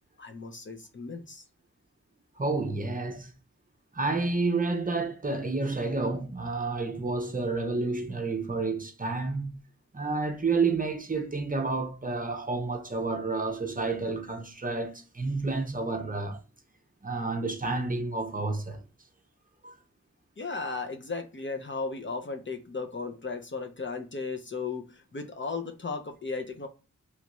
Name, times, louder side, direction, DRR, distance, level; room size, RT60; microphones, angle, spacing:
voice 1, 0.2-1.4 20.4-26.7, left 4 dB, 40° left, 0.6 m, -35 dB
voice 2, 2.4-3.3 3.9-9.5 9.9-16.4 17.0-18.8 19.6-19.8, right 3 dB, 25° right, 0.6 m, -30 dB
3.1 x 2.3 x 3.0 m
wide cardioid pair, 70°, 31 cm